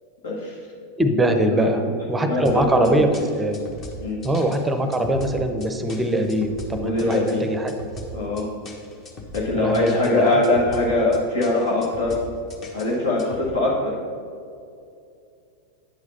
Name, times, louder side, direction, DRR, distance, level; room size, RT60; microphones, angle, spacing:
voice 1, 0.2-0.6 1.5-1.7 2.3-3.0 4.0-4.2 6.8-7.4 8.1-8.5 9.3-12.2 12.7-13.9, left 2 dB, 65° left, -4 dB, 1.5 m, -22 dB
voice 2, 1.0-1.8 2.1-3.1 3.4-3.6 4.2-7.7 9.6-10.4, right 1 dB, 10° right, 6 dB, 0.7 m, -22 dB
sound 1, 2.4-13.5, left 1 dB, 30° left, 1.3 m, -39 dB
9.3 x 4.9 x 5.5 m, 2.5 s
figure-of-eight pair, 90°, 0 cm